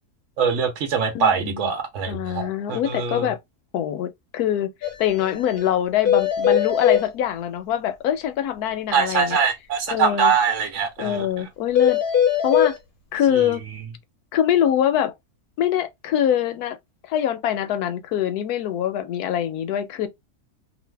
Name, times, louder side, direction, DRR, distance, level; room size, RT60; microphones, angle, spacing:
voice 1, 0.4-3.3 8.9-11.3 13.3-13.4, right 6 dB, 60° right, 1.0 m, -23 dB
voice 2, 1.1-1.7 2.1-3.4 3.7-4.7 5.0-9.4 9.9-10.3 11.0-12.0 12.4-12.7 13.1-13.6 14.3-15.1 15.6-16.8 17.1-20.1, left 10 dB, 75° left, 1.1 m, -24 dB
sound 1, 4.8-4.9 5.2-5.3 5.6-5.7 6.1-7.0 11.8-12.7, left 8 dB, 45° left, 0.8 m, -19 dB
2.6 x 2.5 x 3.2 m
omnidirectional pair, 1.7 m